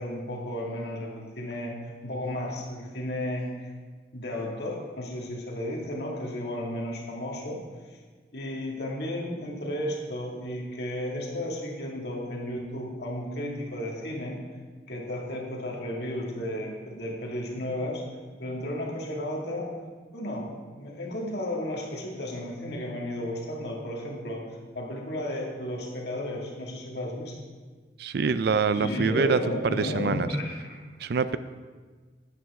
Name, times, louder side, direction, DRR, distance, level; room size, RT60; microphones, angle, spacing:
voice 1, 0.0-1.8 2.0-3.7 4.1-7.6 7.9-8.0 8.3-14.4 14.9-20.5 20.8-24.4 24.7-27.4 28.7-30.8, left 1 dB, 60° left, -2 dB, 2.2 m, -33 dB
voice 2, 28.0-30.3 31.0-31.4, right 5 dB, 60° right, 14 dB, 0.4 m, -25 dB
12.5 x 9.3 x 3.6 m, 1.4 s
head